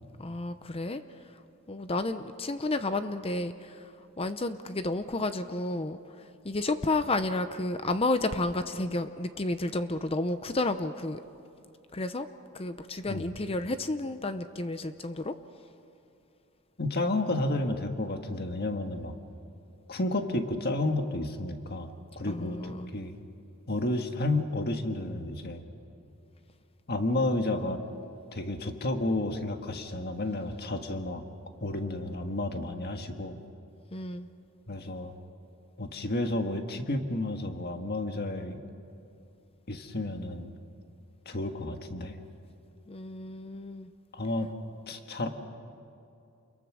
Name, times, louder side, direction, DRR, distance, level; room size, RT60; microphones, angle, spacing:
voice 1, 0.2-1.0 1.7-6.0 6.4-11.2 11.9-12.3 12.5-15.3 22.3-22.9 33.9-34.3 42.9-43.9, left 2 dB, 25° left, 10 dB, 0.7 m, -31 dB
voice 2, 16.8-19.2 19.9-23.1 23.7-25.6 26.9-27.8 28.3-31.2 31.6-33.4 34.7-35.1 35.8-38.6 39.7-40.5 41.2-42.2 44.1-44.5 44.9-45.3, left 2 dB, 45° left, 5 dB, 1.6 m, -31 dB
29.0 x 22.0 x 6.2 m, 2.7 s
head